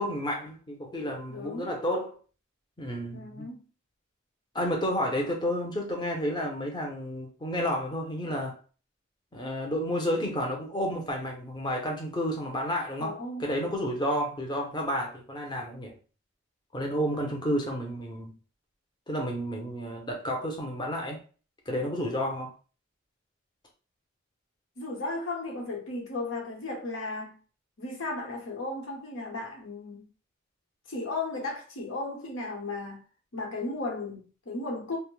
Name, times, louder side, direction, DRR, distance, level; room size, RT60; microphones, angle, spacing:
voice 1, 0.0-2.2 2.8-3.5 4.5-8.6 9.3-16.0 16.7-18.3 19.1-21.2 21.7-22.5, equal, 20° left, 0.7 m, -31 dB
voice 2, 1.3-1.7 3.1-3.7 13.0-13.4 24.8-27.4 27.8-30.1 30.9-33.0 33.3-35.0, left 2 dB, 85° left, 1.0 m, -35 dB
2.7 x 2.1 x 3.1 m
head